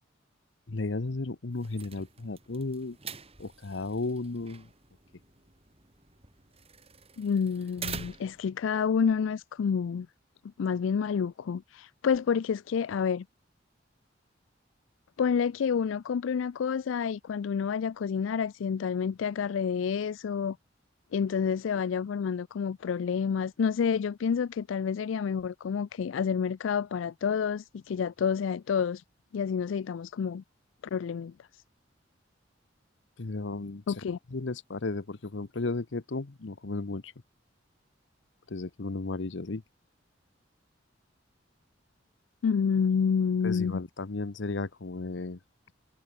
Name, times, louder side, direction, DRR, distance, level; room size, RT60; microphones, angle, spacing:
voice 1, 0.7-3.0 3.4-4.7 33.2-33.8 34.3-37.1 38.5-39.6 43.4-45.4, left 3 dB, 70° left, 0.9 m, -34 dB
sound 1, 1.5-8.5, right 6 dB, 30° right, 5.2 m, -45 dB
voice 2, 7.2-10.1 10.6-13.2 15.2-20.6 21.1-29.0 29.3-30.4 30.8-31.3 33.9-34.2 42.4-43.8, left 6 dB, 85° left, 0.4 m, -29 dB
head